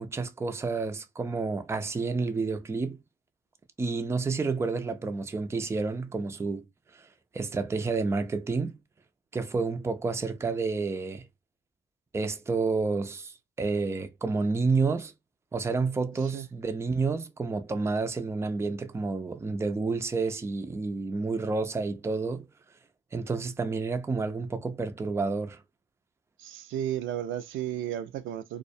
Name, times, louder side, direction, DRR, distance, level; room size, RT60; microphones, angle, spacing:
voice 1, 0.0-3.0 3.8-6.6 6.9-7.1 7.3-8.8 9.3-11.3 12.1-15.1 15.5-22.5 23.1-25.6, right 4 dB, 15° right, 0.4 m, -30 dB
voice 2, 26.4-28.6, right 11 dB, 75° right, 0.4 m, -33 dB
2.3 x 2.1 x 2.6 m
cardioid pair, 90°, 20 cm